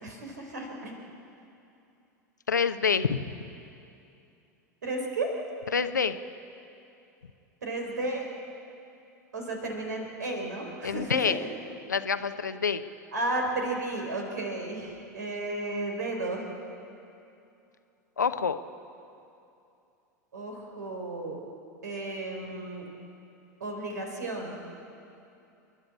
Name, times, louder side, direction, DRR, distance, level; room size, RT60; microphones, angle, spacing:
voice 1, 0.0-0.9 4.8-5.3 7.6-8.2 9.3-11.4 13.1-16.5 20.3-21.4 21.8-22.8 23.6-24.6, right 2 dB, 75° right, 1 dB, 4.2 m, -33 dB
voice 2, 2.5-3.2 5.7-6.2 10.8-11.4 11.9-12.8 18.2-18.6, left 6 dB, 80° left, 11 dB, 0.8 m, -26 dB
29.0 x 11.0 x 8.6 m, 2.7 s
figure-of-eight pair, 85°, 10 cm